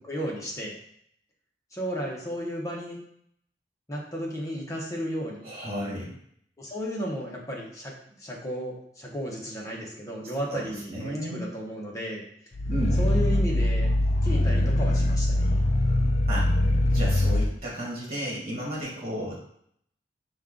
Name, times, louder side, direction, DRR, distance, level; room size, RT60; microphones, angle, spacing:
voice 1, 0.1-0.8 1.7-3.0 3.9-5.5 6.6-12.2 13.0-13.9 14.2-15.4, equal, 20° left, -2 dB, 0.8 m, -34 dB
voice 2, 5.4-6.1 10.5-11.4 12.7-13.0 16.3-16.5 16.9-19.4, equal, 35° right, -5 dB, 1.6 m, -33 dB
Growling, 12.5-17.5, left 1 dB, 35° left, 0.3 m, -23 dB
5.2 x 2.3 x 3.7 m, 0.68 s
head